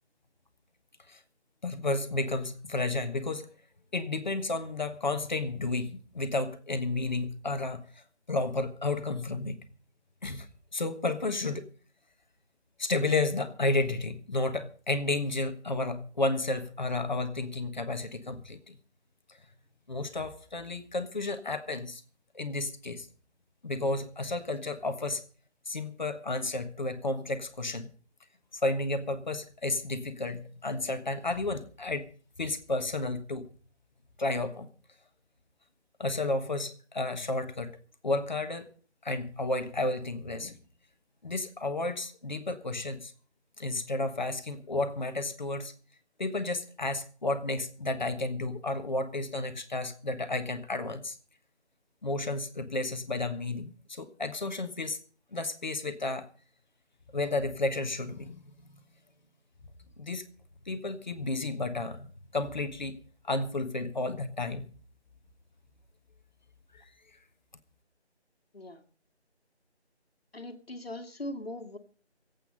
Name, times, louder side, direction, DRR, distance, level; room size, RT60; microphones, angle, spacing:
voice 1, 1.6-3.5 3.9-7.8 8.3-9.6 10.2-10.4 10.7-11.7 12.8-18.7 19.9-22.0 22.3-23.1 23.6-25.2 25.7-27.9 28.6-32.1 32.4-33.4 34.2-34.7 36.0-37.7 38.0-38.7 39.0-40.6 41.2-43.1 43.6-45.7 46.2-51.2 52.0-55.0 55.3-56.2 57.1-58.4 60.0-60.2 60.7-62.1 62.3-63.0 63.3-64.7, left 2 dB, 40° left, 8 dB, 1.5 m, -32 dB
voice 2, 70.3-71.8, left 1 dB, 60° left, 6 dB, 2.2 m, -40 dB
21.5 x 8.5 x 5.2 m, 0.42 s
figure-of-eight pair, 170°, 34 cm